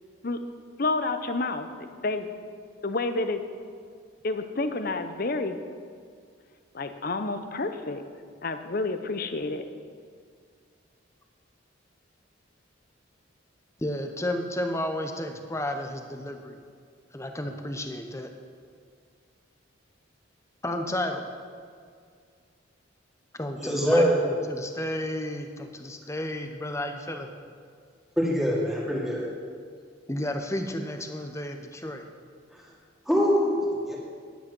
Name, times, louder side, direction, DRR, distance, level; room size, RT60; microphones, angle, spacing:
voice 1, 0.8-2.3 2.8-3.4 4.2-5.6 6.7-8.0 8.4-9.6, left 3 dB, 45° left, 9 dB, 0.8 m, -29 dB
voice 2, 13.8-16.6 17.1-18.3 20.6-21.2 23.4-27.3 30.1-32.0, left 1 dB, 15° left, 5 dB, 0.8 m, -32 dB
voice 3, 23.6-24.2 28.2-29.3 33.1-33.9, equal, ahead, -5 dB, 2.4 m, -23 dB
10.5 x 10.0 x 6.1 m, 2.1 s
head